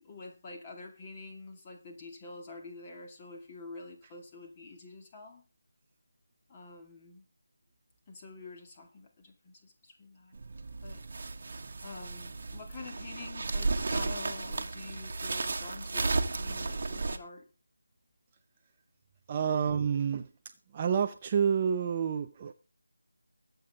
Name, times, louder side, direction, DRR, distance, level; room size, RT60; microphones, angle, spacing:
voice 1, 0.0-5.4 6.5-7.3 8.1-10.4 10.8-11.0 11.8-17.5, left 3 dB, 20° left, 2.5 m, -47 dB
sound 1, 10.3-17.2, right 3 dB, 40° right, 1.5 m, -34 dB
voice 2, 19.3-22.5, right 7 dB, 20° right, 0.7 m, -29 dB
22.0 x 8.2 x 3.6 m
figure-of-eight pair, 160°, 0 cm